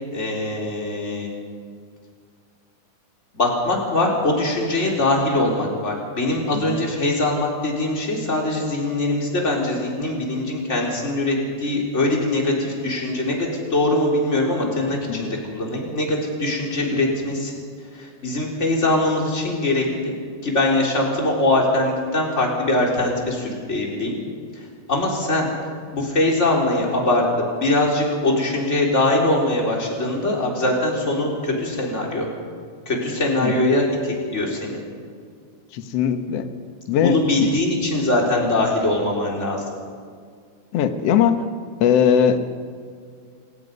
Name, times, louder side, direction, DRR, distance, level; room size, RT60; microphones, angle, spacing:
voice 1, 0.1-1.3 3.3-17.5 17.9-20.1 20.4-24.1 24.6-25.5 25.9-27.2 27.6-32.3 32.9-34.8 37.0-39.6, left 2 dB, 20° left, -1 dB, 3.9 m, -22 dB
voice 2, 35.7-36.5 36.9-37.5 40.7-41.4 41.8-42.4, left 8 dB, 65° left, 8 dB, 1.6 m, -20 dB
29.0 x 17.0 x 5.4 m, 2.1 s
omnidirectional pair, 4.4 m